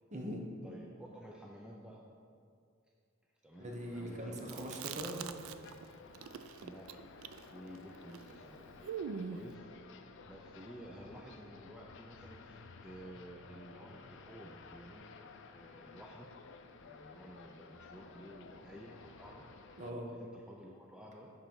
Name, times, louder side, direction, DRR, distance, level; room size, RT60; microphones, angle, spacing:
voice 1, 0.1-0.4 3.6-5.3 19.8-20.1, equal, 35° right, 0 dB, 1.0 m, -41 dB
voice 2, 0.6-2.0 3.4-4.7 6.6-7.2 7.5-8.7 9.3-9.7 10.3-16.3 16.8-19.5 20.1-21.3, right 1 dB, 5° right, -2 dB, 0.4 m, -52 dB
sound 1, 3.5-19.9, left 4 dB, 60° left, 0.5 m, -55 dB
Chewing mastication, 4.4-5.9 6.1-9.5, right 7 dB, 70° right, 0.4 m, -43 dB
10.5 x 4.0 x 4.6 m, 2.3 s
head